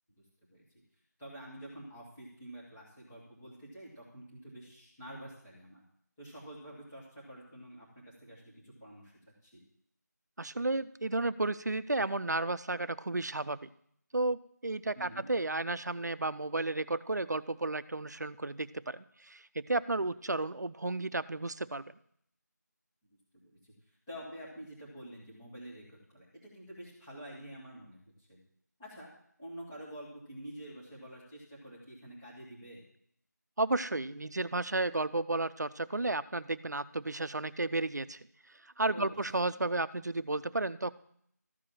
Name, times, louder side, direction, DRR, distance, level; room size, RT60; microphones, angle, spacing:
voice 1, 1.2-5.8 6.2-7.9 8.2-9.1 9.4-9.6 14.9-15.2 23.4-23.6 24.1-28.4 28.8-29.1 29.4-32.8 38.9-39.5, equal, 10° left, -10 dB, 1.4 m, -48 dB
voice 2, 10.4-13.7 14.1-21.8 33.6-38.2 38.8-40.9, right 2 dB, 65° right, 13 dB, 0.6 m, -33 dB
13.5 x 4.9 x 7.4 m, 0.68 s
figure-of-eight pair, 175°, 10 cm